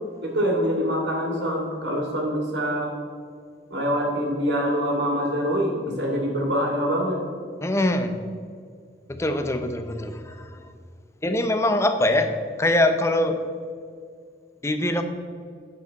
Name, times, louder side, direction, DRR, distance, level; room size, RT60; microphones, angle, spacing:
voice 1, 0.2-2.9 3.7-7.2, equal, 80° right, -1 dB, 2.3 m, -25 dB
voice 2, 7.6-8.1 9.1-10.6 11.2-12.3 12.6-13.4 14.6-15.0, left 1 dB, 15° left, 7 dB, 0.6 m, -23 dB
9.1 x 7.6 x 4.1 m, 2.1 s
head